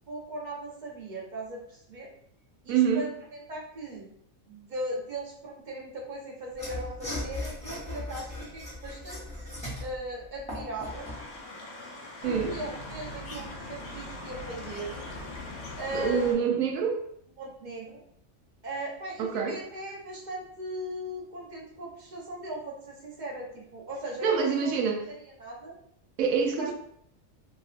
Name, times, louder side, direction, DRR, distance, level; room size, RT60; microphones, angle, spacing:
voice 1, 0.1-2.1 2.6-4.1 4.5-9.2 9.8-11.1 12.2-15.1 15.8-16.4 17.4-18.0 18.6-24.7 25.4-25.7 26.6-26.7, right 1 dB, 45° right, 0.7 m, -38 dB
voice 2, 2.7-3.0 12.2-12.6 15.9-17.0 19.2-19.6 24.2-25.0 26.2-26.7, right 6 dB, 80° right, 1.0 m, -26 dB
Mechanisms / Sawing, 6.5-11.3, left 1 dB, 5° left, 0.8 m, -38 dB
sound 1, 10.8-16.3, left 2 dB, 60° left, 0.9 m, -40 dB
2.9 x 2.7 x 2.4 m
omnidirectional pair, 1.4 m